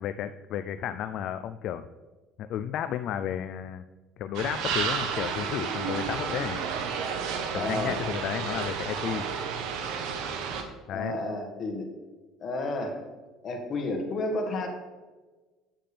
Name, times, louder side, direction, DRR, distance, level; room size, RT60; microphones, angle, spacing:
voice 1, 0.0-1.9 2.4-3.8 4.2-6.6 7.5-9.3 10.9-11.1, left 10 dB, 60° left, 11 dB, 0.3 m, -33 dB
sound 1, 4.3-10.6, right 6 dB, 70° right, 1.0 m, -31 dB
voice 2, 7.5-8.0 10.9-11.9 12.4-13.0 13.4-14.7, left 2 dB, 40° left, 3 dB, 1.7 m, -31 dB
8.7 x 7.4 x 3.4 m, 1.3 s
supercardioid pair, 100°, 0 cm